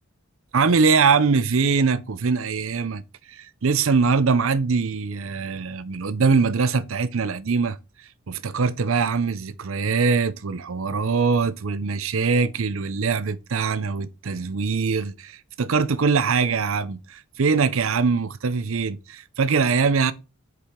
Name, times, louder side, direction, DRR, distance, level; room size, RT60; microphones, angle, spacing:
voice 1, 0.5-3.0 3.3-7.8 8.3-20.1, right 5 dB, 65° right, 0.6 m, -22 dB
6.9 x 4.9 x 3.7 m
head